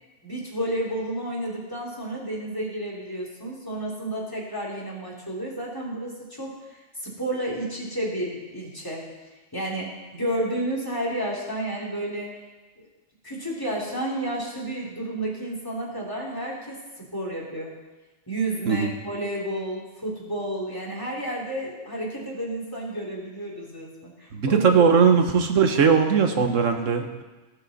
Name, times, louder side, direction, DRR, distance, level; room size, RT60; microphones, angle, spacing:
voice 1, 0.2-9.1 9.5-12.3 13.2-17.7 18.3-24.6, right 1 dB, 15° left, -3 dB, 2.7 m, -31 dB
voice 2, 24.3-27.2, right 6 dB, 80° right, 6 dB, 1.4 m, -19 dB
18.5 x 7.9 x 4.0 m, 1.2 s
omnidirectional pair, 1.3 m